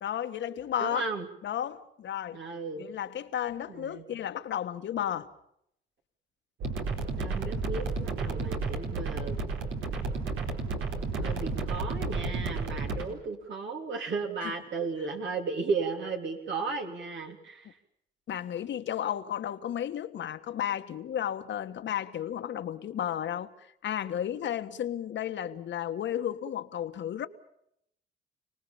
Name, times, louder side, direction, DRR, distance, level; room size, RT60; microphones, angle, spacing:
voice 1, 0.0-1.0 1.4-2.4 2.8-5.3 14.4-14.5 18.3-23.5 23.8-27.3, left 10 dB, 65° left, 1.6 m, -33 dB
voice 2, 0.8-1.3 2.3-2.8 3.7-4.0 7.2-7.9 8.2-9.4 11.2-17.7, right 4 dB, 65° right, 3.1 m, -34 dB
sound 1, 6.6-13.0, right 3 dB, 80° right, 4.5 m, -32 dB
29.5 x 19.0 x 7.2 m
cardioid pair, 90°, 20 cm